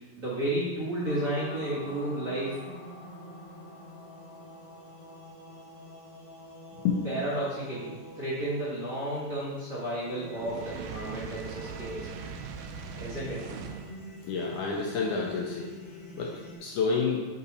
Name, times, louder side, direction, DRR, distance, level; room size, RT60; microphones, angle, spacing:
voice 1, 0.0-2.6 7.0-12.2 13.0-13.5, right 1 dB, 45° right, -9 dB, 1.0 m, -32 dB
sound 1, 1.0-16.6, left 1 dB, 40° left, 2.0 m, -46 dB
Fire, 10.3-14.0, right 7 dB, 85° right, 1.9 m, -41 dB
voice 2, 14.2-17.3, left 5 dB, 75° left, -1 dB, 1.9 m, -30 dB
8.2 x 4.0 x 4.1 m, 1.3 s
omnidirectional pair, 4.1 m